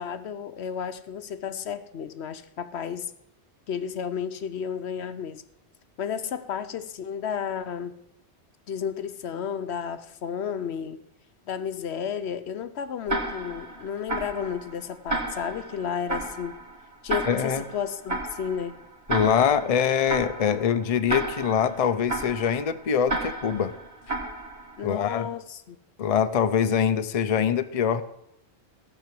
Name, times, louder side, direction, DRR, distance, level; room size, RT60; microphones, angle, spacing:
voice 1, 0.0-3.1 3.7-5.4 6.0-8.0 8.7-11.0 11.5-16.6 17.0-18.8 24.8-25.8, left 7 dB, 75° left, 1.0 m, -32 dB
Tick-tock, 13.1-24.9, right 2 dB, 65° right, 3.5 m, -33 dB
voice 2, 17.3-17.6 19.1-23.7 24.8-25.3 26.0-28.0, left 7 dB, 40° left, 0.6 m, -24 dB
17.0 x 6.1 x 7.6 m
omnidirectional pair, 1.1 m